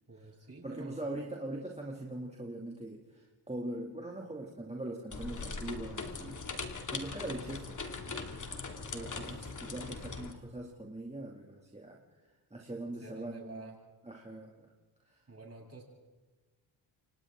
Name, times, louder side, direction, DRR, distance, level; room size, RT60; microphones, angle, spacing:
voice 1, 0.1-1.0 8.8-9.6 13.0-13.8 15.3-15.8, right 3 dB, 30° right, -1 dB, 7.7 m, -50 dB
voice 2, 0.6-6.4 6.9-13.7 14.0-14.7 15.1-15.2, right 1 dB, 15° right, -1 dB, 2.5 m, -42 dB
sound 1, 5.1-10.3, left 4 dB, 40° left, 2.5 m, -40 dB
29.0 x 25.5 x 3.8 m, 1.2 s
cardioid pair, 90°, 48 cm